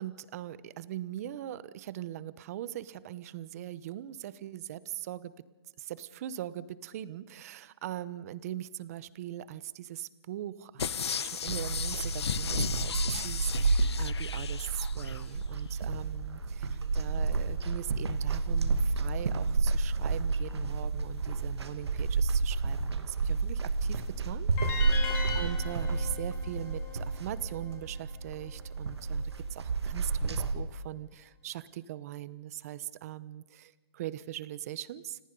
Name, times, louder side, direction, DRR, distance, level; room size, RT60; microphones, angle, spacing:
voice 1, 0.0-5.3 5.8-16.7 16.9-25.0 25.3-35.2, right 13 dB, 35° right, 18 dB, 0.9 m, -41 dB
sound 1, 10.8-15.2 15.7-15.8, left 7 dB, 80° left, 1.0 m, -35 dB
walking around in the room, 11.5-30.5, right 3 dB, 80° right, 2.4 m, -30 dB
sound 2, 24.6-27.7, left 4 dB, 20° left, 4.3 m, -39 dB
29.5 x 17.5 x 5.4 m, 1.2 s
hypercardioid pair, 160°, 14 cm